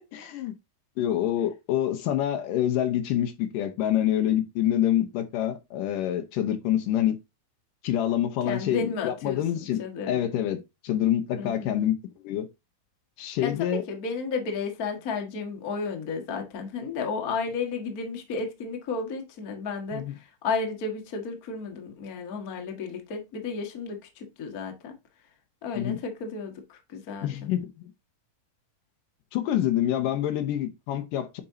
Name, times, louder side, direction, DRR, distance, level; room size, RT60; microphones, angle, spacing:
voice 1, 0.1-0.5 1.0-7.2 7.8-9.8 10.1-12.0 12.2-12.5 13.2-13.8 19.9-20.1 25.8-26.0 27.2-27.7 29.3-31.4, left 11 dB, 75° left, 2.4 m, -26 dB
voice 2, 8.4-10.3 11.4-11.7 13.2-24.9 25.6-27.5, left 4 dB, 40° left, 1.4 m, -33 dB
8.7 x 5.3 x 2.7 m
omnidirectional pair, 4.0 m